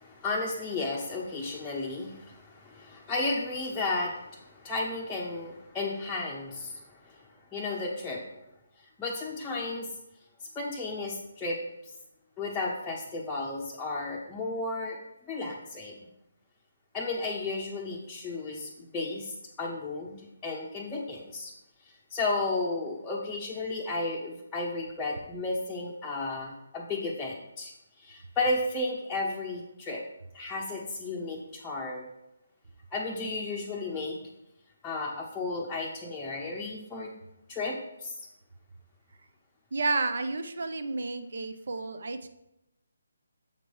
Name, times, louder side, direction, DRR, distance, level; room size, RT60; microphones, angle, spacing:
voice 1, 0.0-8.2 9.0-9.9 10.4-11.9 12.4-15.0 15.3-15.9 16.9-21.5 21.8-27.7 28.0-30.0 30.3-32.1 32.9-34.2 34.8-37.1 37.5-38.2, left 2 dB, 10° left, -5 dB, 0.8 m, -33 dB
voice 2, 39.7-42.3, right 3 dB, 55° right, 9 dB, 0.7 m, -31 dB
7.4 x 5.2 x 4.7 m, 0.87 s
figure-of-eight pair, 145°, 0 cm